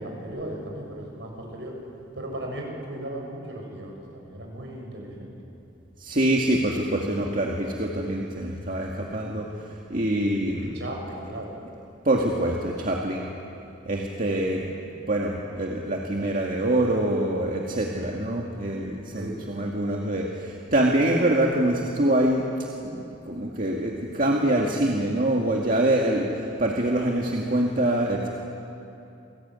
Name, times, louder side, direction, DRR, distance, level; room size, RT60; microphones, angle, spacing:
voice 1, 0.0-1.7 2.1-5.3 10.6-11.6 19.1-19.5 20.2-20.3, right 1 dB, 70° right, 0 dB, 7.4 m, -36 dB
voice 2, 6.0-9.5 9.9-10.8 12.0-13.2 13.9-14.7 15.1-22.5 22.8-28.3, right 1 dB, 45° right, -1 dB, 2.2 m, -25 dB
28.5 x 21.0 x 9.7 m, 2.8 s
head